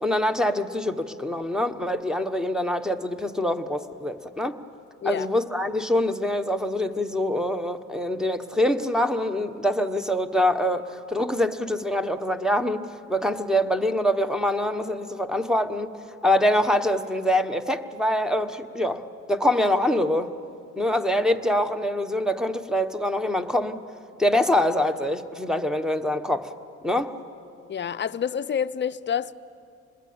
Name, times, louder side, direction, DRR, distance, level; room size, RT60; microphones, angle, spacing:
voice 1, 0.0-4.6 5.0-19.0 19.3-20.3 20.8-23.8 24.2-26.5 26.8-27.1, left 1 dB, ahead, 1.2 m, -24 dB
voice 2, 27.7-29.3, left 8 dB, 40° left, 0.7 m, -28 dB
26.0 x 21.0 x 8.7 m
cardioid pair, 90°, 30 cm